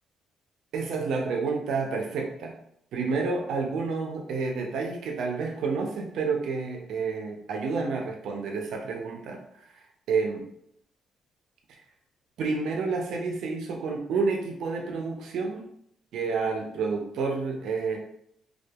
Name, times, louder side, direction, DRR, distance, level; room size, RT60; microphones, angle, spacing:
voice 1, 0.7-2.5 2.9-9.4 10.1-10.4 12.4-15.7 16.1-18.0, right 4 dB, 75° right, 2 dB, 0.5 m, -29 dB
2.7 x 2.3 x 2.3 m, 0.71 s
cardioid pair, 90°, 0 cm